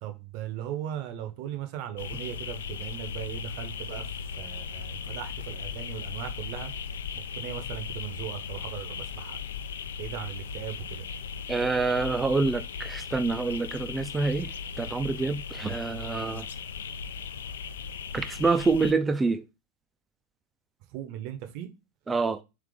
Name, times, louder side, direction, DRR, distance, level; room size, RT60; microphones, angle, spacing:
voice 1, 0.0-6.7 7.3-9.4 10.0-11.0 20.9-21.7, right 11 dB, 45° right, 0.7 m, -38 dB
sound 1, 2.0-18.9, left 6 dB, 65° left, 0.3 m, -37 dB
voice 2, 11.5-14.5 14.8-16.5 18.1-19.4 22.1-22.4, right 3 dB, 15° right, 0.3 m, -26 dB
3.3 x 3.2 x 3.6 m
figure-of-eight pair, 85°, 0 cm